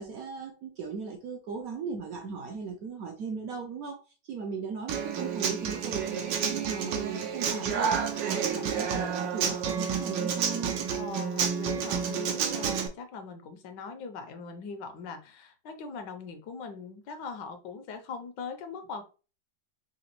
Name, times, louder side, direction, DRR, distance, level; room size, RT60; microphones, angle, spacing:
voice 1, 0.0-8.0 8.2-10.8, right 5 dB, 70° right, 0.8 m, -37 dB
Human voice / Acoustic guitar, 4.9-12.9, right 7 dB, 85° right, 1.4 m, -30 dB
voice 2, 10.9-19.0, left 5 dB, 80° left, 1.3 m, -41 dB
4.0 x 2.8 x 2.9 m
omnidirectional pair, 1.9 m